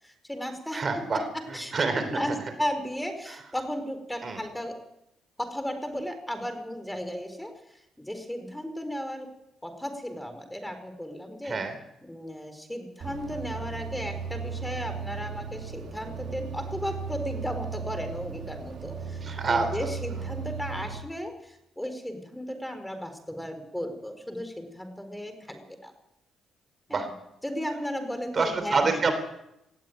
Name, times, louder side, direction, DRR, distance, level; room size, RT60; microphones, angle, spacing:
voice 1, 0.0-0.8 1.5-4.7 5.4-9.3 9.6-11.6 12.0-25.9 26.9-27.0 27.4-29.1, equal, 5° left, 8 dB, 4.2 m, -35 dB
voice 2, 0.7-2.2 4.2-4.4 11.5-11.7 19.2-19.7 26.9-27.1 28.3-29.1, right 4 dB, 40° right, 9 dB, 3.6 m, -27 dB
sound 1, 13.0-21.0, right 6 dB, 65° right, 3.6 m, -36 dB
18.5 x 15.0 x 9.2 m, 0.84 s
cardioid pair, 90°, 0 cm